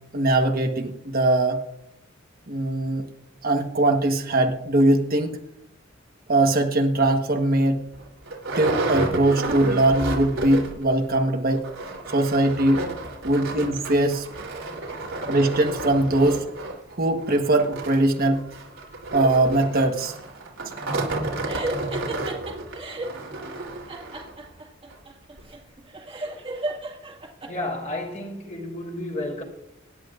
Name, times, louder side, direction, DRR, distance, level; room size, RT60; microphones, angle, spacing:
voice 1, 0.1-1.6 2.5-3.1 3.4-5.4 6.3-7.9 8.6-11.7 12.1-12.9 13.2-14.3 15.3-16.5 16.9-18.5 19.1-20.1, right 2 dB, 50° right, 1.3 m, -21 dB
sound 1, 7.0-7.1 7.6-7.7 7.9-10.9 11.1-11.2 11.5-24.3 24.9-25.0 25.4-25.5, right 2 dB, 90° right, 3.3 m, -31 dB
sound 2, 21.4-23.2 23.9-27.5, right 2 dB, 30° right, 2.1 m, -33 dB
voice 2, 27.5-29.4, left 1 dB, 35° left, 4.0 m, -32 dB
25.0 x 11.0 x 2.5 m
head